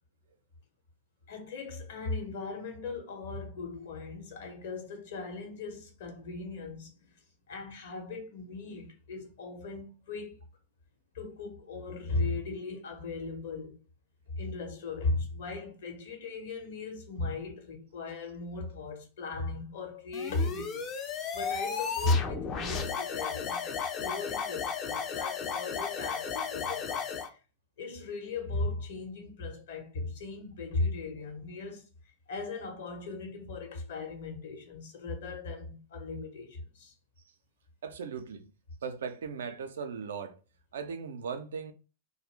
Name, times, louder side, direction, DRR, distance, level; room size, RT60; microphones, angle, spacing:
voice 1, 1.3-7.1 7.5-10.4 11.1-13.8 14.3-20.9 21.3-27.4 27.8-31.9 32.3-36.9, left 3 dB, 60° left, 1.0 m, -37 dB
sound 1, 20.1-27.3, left 6 dB, 30° left, 0.5 m, -34 dB
voice 2, 37.8-38.5 38.8-40.3 40.7-41.7, right 6 dB, 65° right, 0.4 m, -38 dB
2.4 x 2.1 x 3.2 m
figure-of-eight pair, 95°, 0 cm